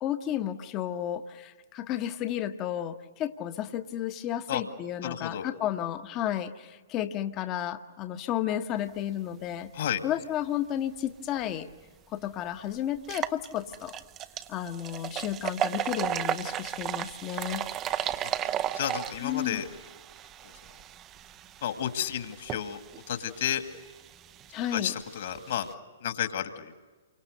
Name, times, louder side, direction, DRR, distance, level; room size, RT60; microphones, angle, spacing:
voice 1, 0.0-9.7 10.0-11.7 12.1-13.9 14.5-17.7 19.2-19.6 24.5-24.9, left 11 dB, 30° left, 9 dB, 1.2 m, -32 dB
voice 2, 5.0-5.5 9.7-10.1 18.1-19.7 20.4-20.8 21.6-22.8 23.1-23.6 24.7-25.7 26.0-26.7, left 10 dB, 55° left, 8 dB, 2.2 m, -32 dB
sound 1, 11.7-11.8 12.2-12.3 13.0-25.7, right 10 dB, 25° right, 0.7 m, -35 dB
29.0 x 24.5 x 6.6 m, 1.4 s
figure-of-eight pair, 115°, 0 cm